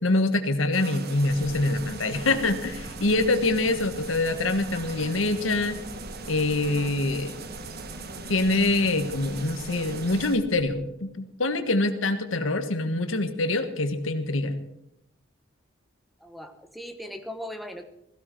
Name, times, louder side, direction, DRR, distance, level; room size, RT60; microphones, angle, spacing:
voice 1, 0.0-5.8 6.3-7.3 8.3-14.5, left 2 dB, 90° left, 8 dB, 1.5 m, -25 dB
sound 1, 0.7-10.4, right 4 dB, 55° right, 1.3 m, -40 dB
sound 2, 1.2-10.8, left 1 dB, 45° left, 3.5 m, -43 dB
voice 2, 16.2-17.9, equal, ahead, 7 dB, 1.2 m, -39 dB
16.5 x 15.5 x 4.6 m, 0.80 s
head